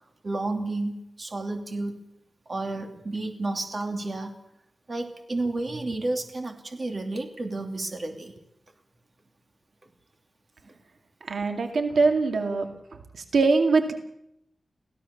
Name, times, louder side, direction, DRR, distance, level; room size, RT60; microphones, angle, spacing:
voice 1, 0.0-2.0 2.5-4.4 4.9-8.3 10.6-10.7, right 2 dB, 40° right, 4 dB, 2.9 m, -31 dB
voice 2, 11.3-12.7 13.1-13.9, right 3 dB, 85° right, 5 dB, 2.4 m, -22 dB
24.0 x 16.5 x 7.2 m, 0.80 s
wide cardioid pair, 135°, 0 cm